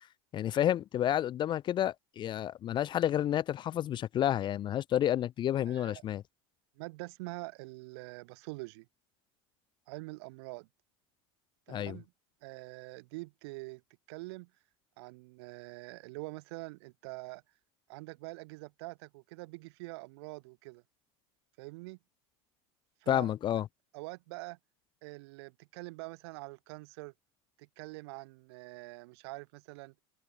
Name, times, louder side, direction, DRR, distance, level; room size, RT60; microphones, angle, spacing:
voice 1, 0.3-6.2 11.7-12.0 23.1-23.7, left 11 dB, 35° left, 0.7 m, -30 dB
voice 2, 5.7-6.0 6.8-8.8 9.9-10.7 11.7-12.1 12.4-13.8 14.1-14.5 15.0-17.4 17.9-20.8 21.6-22.0 23.0-23.3 23.9-24.6 25.0-27.1 27.6-29.9, right 25 dB, 75° right, 5.2 m, -45 dB
open air
supercardioid pair, 125°, 14 cm